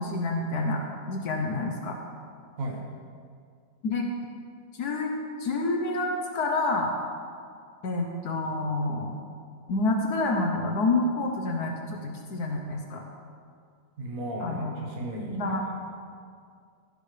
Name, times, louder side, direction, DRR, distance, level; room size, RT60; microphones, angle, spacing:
voice 1, 0.0-2.0 3.8-4.1 4.7-5.1 5.4-6.1 6.3-6.9 7.8-9.2 9.7-13.0 14.4-14.7 15.3-15.6, left 2 dB, 70° left, 2 dB, 1.5 m, -28 dB
voice 2, 14.0-15.6, right 1 dB, 60° right, -1 dB, 1.7 m, -34 dB
15.5 x 11.0 x 3.3 m, 2.2 s
omnidirectional pair, 1.7 m